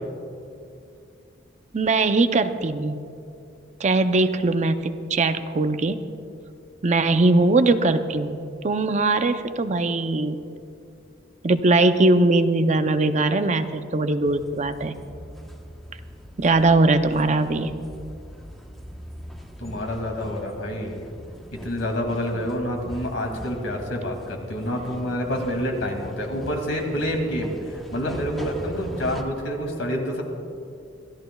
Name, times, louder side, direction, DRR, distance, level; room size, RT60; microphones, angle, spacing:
voice 1, 1.7-3.0 3.8-6.0 6.8-8.4 8.6-10.4 11.4-14.9 16.4-17.7, right 2 dB, 40° right, 9 dB, 0.5 m, -20 dB
sound 1, 14.2-29.2, equal, ahead, 1.0 m, -40 dB
voice 2, 19.6-21.2 21.5-30.2, equal, 90° left, 2 dB, 2.3 m, -28 dB
26.0 x 14.0 x 2.3 m, 2.5 s
head